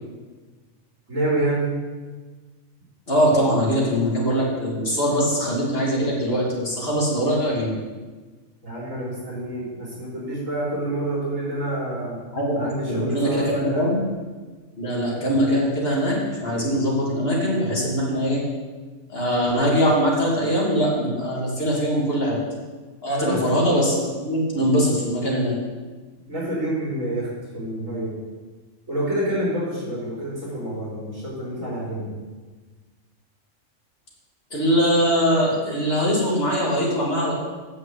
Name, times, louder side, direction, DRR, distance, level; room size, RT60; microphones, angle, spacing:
voice 1, 1.1-1.7 8.6-12.2 12.5-13.8 23.1-23.4 26.3-28.1 28.9-32.1, right 1 dB, 75° right, -7 dB, 4.5 m, -27 dB
voice 2, 3.1-7.7 12.3-14.0 14.8-18.4 19.1-22.4 23.0-25.6 34.5-37.4, equal, 45° left, -4 dB, 2.8 m, -22 dB
8.6 x 6.5 x 8.0 m, 1.4 s
omnidirectional pair, 1.4 m